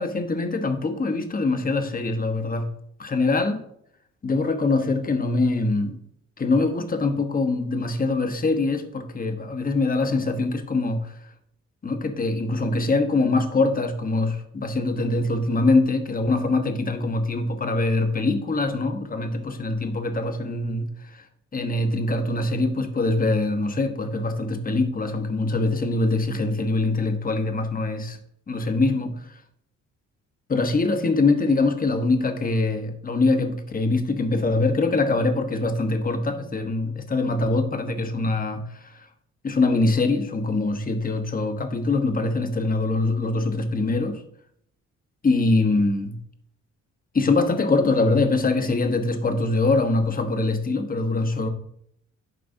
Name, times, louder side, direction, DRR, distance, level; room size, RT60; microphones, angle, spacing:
voice 1, 0.0-2.7 3.0-3.6 4.2-6.0 6.4-11.1 11.8-21.3 21.5-28.2 28.5-29.4 30.5-39.1 39.4-44.2 45.2-46.2 47.1-51.5, left 3 dB, 30° left, 6 dB, 1.0 m, -23 dB
11.5 x 4.6 x 2.7 m, 0.71 s
cardioid pair, 90°, 30 cm